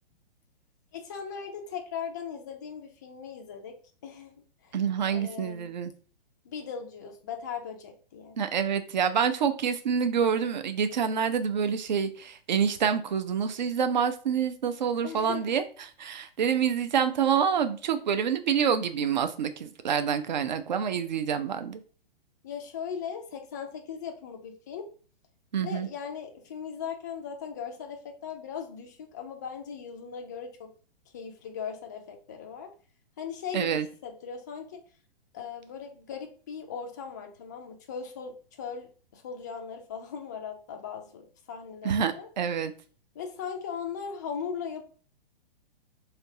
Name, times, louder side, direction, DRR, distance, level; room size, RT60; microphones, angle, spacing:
voice 1, 0.9-3.8 4.0-4.3 4.6-4.8 5.1-5.7 6.4-8.4 15.0-15.4 22.4-24.9 25.6-30.7 31.1-32.7 33.2-34.8 35.3-42.3 43.1-44.8, left 7 dB, 20° left, 4 dB, 0.3 m, -38 dB
voice 2, 4.7-5.9 8.4-15.6 16.0-21.8 25.5-25.9 33.5-33.9 41.8-42.7, right 7 dB, 50° right, 10 dB, 0.5 m, -27 dB
3.4 x 2.8 x 2.7 m, 0.40 s
figure-of-eight pair, 115°, 29 cm